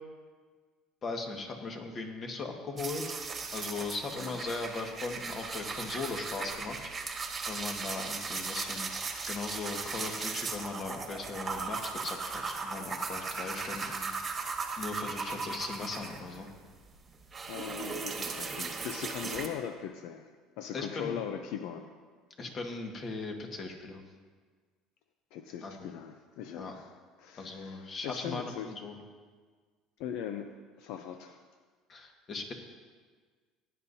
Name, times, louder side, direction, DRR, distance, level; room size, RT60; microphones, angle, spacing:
voice 1, 1.0-3.1 3.5-14.5 14.8-16.5 20.7-21.2 22.4-24.0 25.6-25.9 26.6-26.7 27.4-29.0 31.9-32.5, left 3 dB, 35° left, 3 dB, 1.7 m, -39 dB
sound 1, 2.8-16.5 16.9-19.5, right 4 dB, 25° right, 1.5 m, -37 dB
voice 2, 17.5-20.3 20.6-21.9 25.3-26.9 27.2-28.7 30.0-31.4, left 8 dB, 75° left, 7 dB, 0.6 m, -40 dB
18.5 x 9.8 x 2.8 m, 1.5 s
cardioid pair, 120°, 0 cm